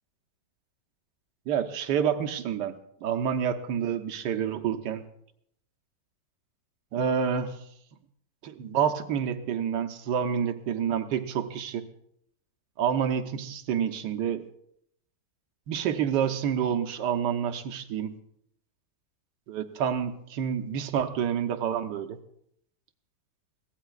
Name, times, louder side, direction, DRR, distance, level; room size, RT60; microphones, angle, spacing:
voice 1, 1.5-2.7 3.0-5.0 6.9-7.6 8.4-11.9 12.8-14.4 15.7-18.1 19.5-22.2, right 8 dB, 75° right, 6 dB, 1.5 m, -28 dB
22.0 x 16.5 x 2.4 m, 0.71 s
omnidirectional pair, 2.0 m